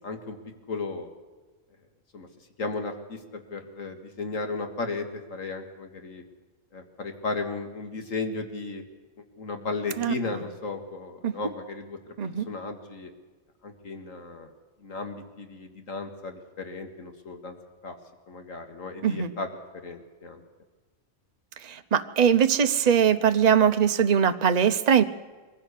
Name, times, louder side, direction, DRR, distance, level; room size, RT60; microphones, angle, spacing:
voice 1, 0.0-0.4 0.7-1.1 2.1-2.3 2.6-6.2 6.7-8.8 9.4-12.0 12.5-13.1 13.6-14.5 14.8-17.5 17.8-18.0 18.3-19.5 19.8-20.4, left 3 dB, 80° left, 6 dB, 2.2 m, -35 dB
voice 2, 21.6-25.0, right 8 dB, 35° right, 9 dB, 0.8 m, -21 dB
22.0 x 15.5 x 8.3 m, 1.3 s
omnidirectional pair, 1.4 m